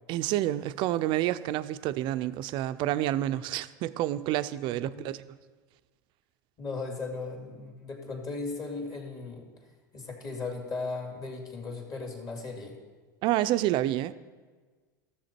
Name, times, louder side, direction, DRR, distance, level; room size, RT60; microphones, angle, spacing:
voice 1, 0.1-5.2 13.2-14.1, right 14 dB, 50° right, 0.4 m, -28 dB
voice 2, 6.6-9.5 9.9-12.8, left 3 dB, 35° left, 2.4 m, -37 dB
13.0 x 7.1 x 4.4 m
hypercardioid pair, 105°, 11 cm